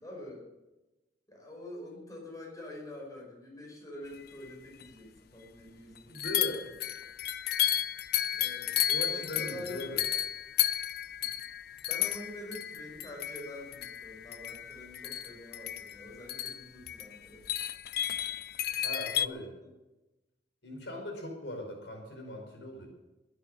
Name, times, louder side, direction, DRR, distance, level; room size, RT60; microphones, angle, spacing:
voice 1, 0.0-0.5 1.3-6.5 8.3-8.8 9.1-9.8 11.2-11.3 11.8-17.5, left 1 dB, 20° left, -1 dB, 5.4 m, -46 dB
sound 1, 4.5-4.6 4.8-4.9 6.1-19.3, left 12 dB, 60° left, 0.6 m, -33 dB
voice 2, 6.1-6.7 8.9-10.0 18.8-19.6 20.6-22.9, left 1 dB, 85° left, 2 dB, 4.9 m, -39 dB
21.0 x 9.3 x 6.6 m, 1.0 s
head